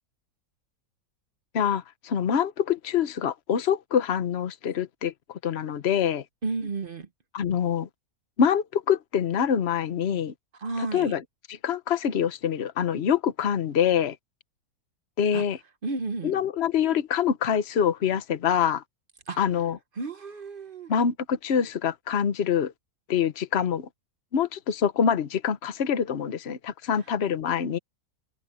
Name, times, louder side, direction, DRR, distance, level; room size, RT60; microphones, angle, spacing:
voice 1, 1.5-6.2 7.3-7.9 8.4-10.3 10.9-11.2 11.5-14.2 15.2-15.6 16.2-18.8 19.4-19.8 20.9-22.7 23.1-23.9 24.3-27.8, left 8 dB, 50° left, 1.1 m, -25 dB
voice 2, 6.4-7.1 10.6-11.1 15.3-15.4 15.8-16.4 19.3-19.4 20.0-20.9, right 3 dB, 40° right, 1.0 m, -32 dB
omnidirectional pair, 1.6 m